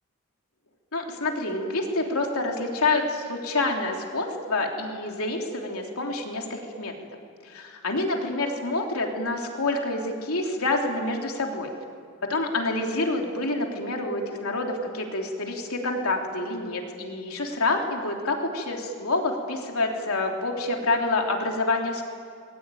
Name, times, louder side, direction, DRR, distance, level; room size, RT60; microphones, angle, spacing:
voice 1, 0.9-6.9 7.4-11.7 12.3-22.0, left 2 dB, 75° left, 1 dB, 3.5 m, -27 dB
28.5 x 22.0 x 9.3 m, 2.3 s
head